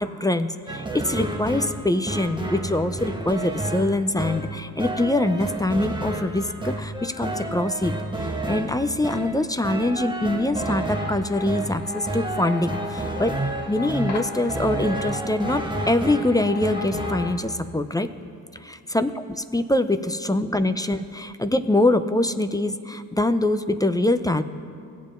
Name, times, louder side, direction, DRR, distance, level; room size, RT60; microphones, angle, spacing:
voice 1, 0.0-7.9 8.5-13.3 13.7-18.1 18.6-19.2 19.5-24.4, left 1 dB, 10° left, 9 dB, 0.4 m, -24 dB
sound 1, 0.7-17.4, right 2 dB, 10° right, 1.0 m, -30 dB
sound 2, 10.6-17.4, left 4 dB, 65° left, 1.4 m, -36 dB
18.5 x 7.3 x 2.5 m, 2.5 s
hypercardioid pair, 50°, 44 cm